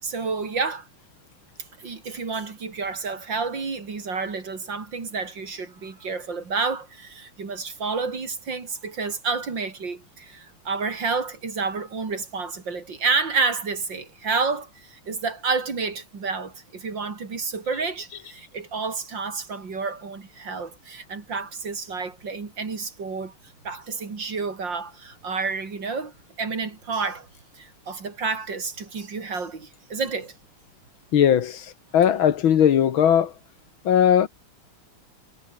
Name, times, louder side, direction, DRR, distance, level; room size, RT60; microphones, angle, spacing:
voice 1, 0.0-0.9 1.8-23.3 23.6-27.3 27.6-30.3, right 4 dB, 60° right, 3.9 m, -30 dB
voice 2, 31.1-31.7 31.9-33.3 33.9-34.3, left 9 dB, 70° left, 2.0 m, -18 dB
omnidirectional pair, 2.3 m